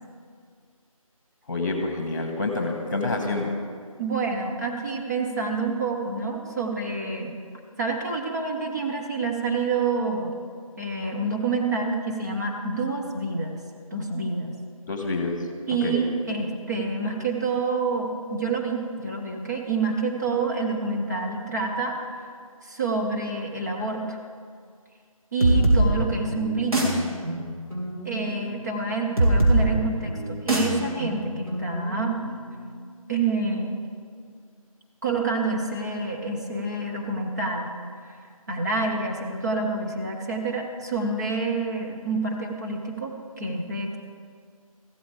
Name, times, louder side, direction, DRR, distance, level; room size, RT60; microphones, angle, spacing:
voice 1, 1.5-3.5 14.9-15.4 15.7-16.0, left 3 dB, 30° left, 3 dB, 1.7 m, -27 dB
voice 2, 4.0-7.4 7.8-10.3 10.8-13.6 13.9-14.5 15.7-22.0 22.6-24.2 25.3-27.0 28.0-32.2 33.1-33.8 35.0-37.7 38.1-38.2 38.5-44.0, right 3 dB, 30° right, -1 dB, 0.9 m, -28 dB
sound 1, 25.4-32.8, right 1 dB, 75° right, 3.4 m, -24 dB
15.0 x 13.5 x 3.5 m, 2.1 s
figure-of-eight pair, 160°, 19 cm